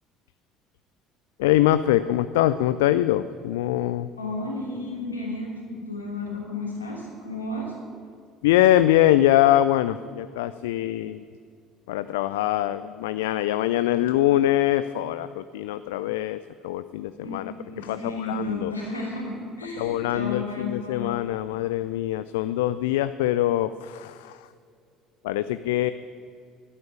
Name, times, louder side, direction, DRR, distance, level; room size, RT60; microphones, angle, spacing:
voice 1, 1.4-4.1 8.4-11.2 11.9-16.4 16.6-18.7 19.8-24.4 25.2-25.9, left 13 dB, 70° left, 14 dB, 0.3 m, -23 dB
voice 2, 4.2-7.7 17.2-21.2, left 2 dB, 90° left, -2 dB, 2.9 m, -33 dB
11.5 x 9.7 x 8.2 m, 2.3 s
figure-of-eight pair, 60°, 0 cm